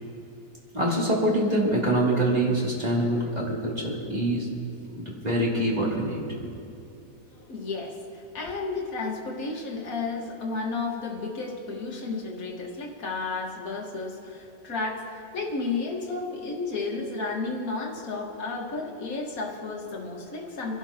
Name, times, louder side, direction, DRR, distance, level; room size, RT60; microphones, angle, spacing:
voice 1, 0.7-4.5 5.0-6.5, right 1 dB, 25° right, -5 dB, 2.9 m, -25 dB
voice 2, 7.3-20.8, left 3 dB, 55° left, -1 dB, 2.2 m, -32 dB
28.0 x 11.5 x 2.9 m, 2.9 s
omnidirectional pair, 1.9 m